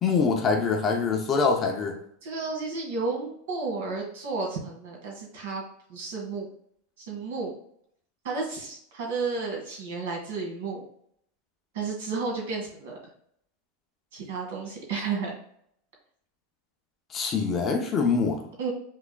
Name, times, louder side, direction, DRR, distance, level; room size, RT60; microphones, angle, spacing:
voice 1, 0.0-2.0 17.1-18.4, left 5 dB, 20° left, 2 dB, 0.6 m, -24 dB
voice 2, 2.2-5.6 5.9-6.5 7.0-7.5 8.2-10.8 11.7-13.0 14.1-15.3 18.6-18.7, right 4 dB, 70° right, 0 dB, 1.8 m, -32 dB
5.8 x 3.5 x 2.2 m, 0.67 s
supercardioid pair, 175°, 0 cm